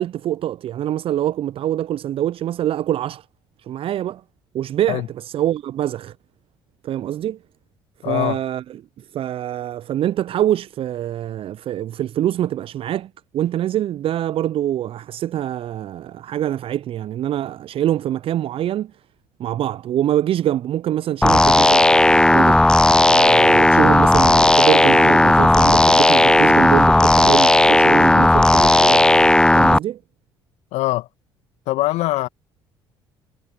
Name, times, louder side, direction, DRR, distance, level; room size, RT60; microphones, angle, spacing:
voice 1, 0.0-3.2 3.7-4.2 4.5-6.1 6.8-7.4 8.0-8.6 9.0-18.9 19.4-21.9 22.3-22.7 23.0-29.1 29.5-30.0, right 12 dB, 45° right, 0.7 m, -24 dB
voice 2, 8.0-8.4 30.7-31.1 31.7-32.3, left 18 dB, 60° left, 2.3 m, -22 dB
sound 1, 21.2-29.8, left 2 dB, 5° left, 0.3 m, -14 dB
figure-of-eight pair, 55°, 13 cm